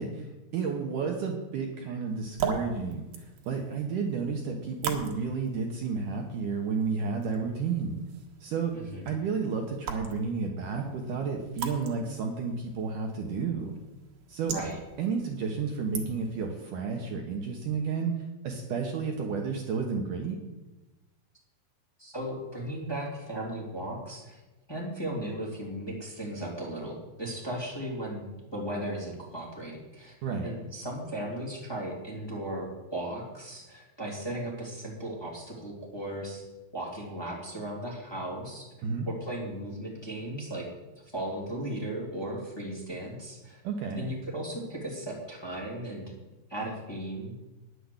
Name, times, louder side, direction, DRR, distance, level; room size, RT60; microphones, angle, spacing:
voice 1, 0.0-8.0 8.4-8.7 9.1-13.7 14.3-14.5 15.0-18.1 18.4-20.4 30.2-30.5 38.8-39.1 43.6-44.1, right 5 dB, 65° right, 2 dB, 2.4 m, -31 dB
sound 1, 2.1-16.5, right 6 dB, 85° right, 3.4 m, -41 dB
voice 2, 8.7-9.1 14.5-14.8 22.0-24.4 24.7-30.1 30.4-36.4 36.7-38.7 39.1-40.7 41.0-43.6 44.0-46.1 46.5-47.3, right 1 dB, 5° left, -4 dB, 2.5 m, -36 dB
10.0 x 8.3 x 8.0 m, 1.1 s
omnidirectional pair, 4.4 m